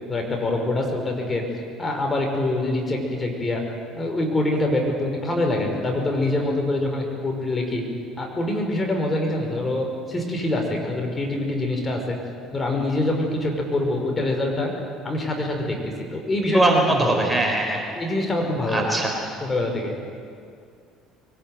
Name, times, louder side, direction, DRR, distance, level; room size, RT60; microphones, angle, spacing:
voice 1, 0.1-1.5 1.8-3.6 3.9-7.8 8.2-12.2 12.5-14.7 15.0-17.3 18.0-18.9 19.4-19.9, left 1 dB, 25° left, 2 dB, 5.4 m, -25 dB
voice 2, 16.5-17.8 18.7-19.1, right 2 dB, 15° right, 2 dB, 4.5 m, -21 dB
22.5 x 19.5 x 9.3 m, 2.3 s
figure-of-eight pair, 60°, 0 cm